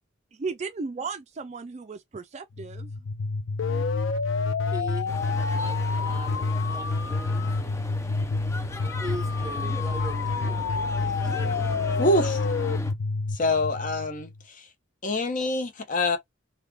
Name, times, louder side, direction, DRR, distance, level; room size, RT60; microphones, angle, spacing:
voice 1, 0.3-2.9, right 4 dB, 35° right, 0.4 m, -35 dB
sound 1, 2.6-14.4, left 3 dB, 80° left, 0.4 m, -28 dB
voice 2, 4.7-5.2 5.5-7.1 9.0-10.6 11.0-11.7, right 1 dB, 20° right, 0.9 m, -40 dB
sound 2, 5.1-12.9, left 1 dB, 15° left, 0.5 m, -39 dB
voice 3, 12.0-12.4 13.3-14.7 15.0-16.2, left 1 dB, 45° left, 0.8 m, -25 dB
3.5 x 2.3 x 3.3 m
head